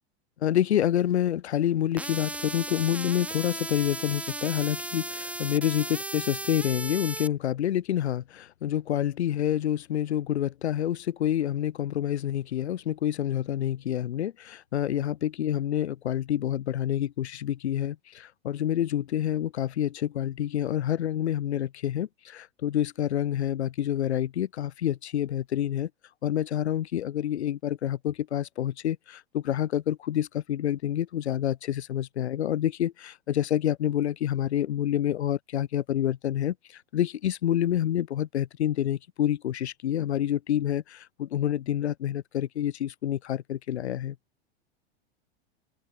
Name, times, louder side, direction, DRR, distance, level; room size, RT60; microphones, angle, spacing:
voice 1, 0.4-25.9 26.2-44.2, left 11 dB, 85° left, 1.1 m, -28 dB
sound 1, 2.0-7.3, right 2 dB, 5° right, 0.8 m, -36 dB
hypercardioid pair, 100°, 32 cm